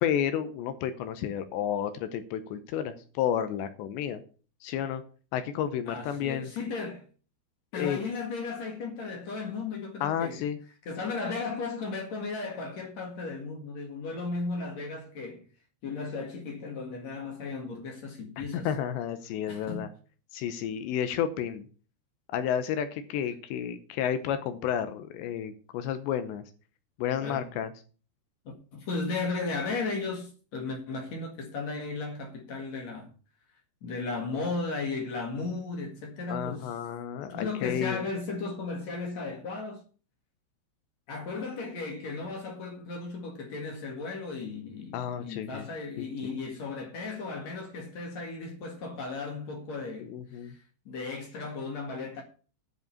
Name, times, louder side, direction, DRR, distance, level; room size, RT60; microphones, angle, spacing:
voice 1, 0.0-4.2 4.6-5.0 5.3-6.5 7.7-8.0 10.0-10.6 18.4-19.9 20.3-21.7 22.3-26.4 27.0-27.7 36.3-38.0 44.9-45.7 46.0-46.1 50.0-50.5, left 9 dB, 80° left, 2.7 m, -31 dB
voice 2, 5.9-7.1 7.7-10.4 10.9-15.4 15.8-18.7 19.5-19.9 27.2-27.5 28.7-33.1 33.8-36.7 37.3-39.8 41.1-52.2, left 3 dB, 55° left, 2.0 m, -35 dB
10.5 x 4.9 x 8.2 m
omnidirectional pair, 5.7 m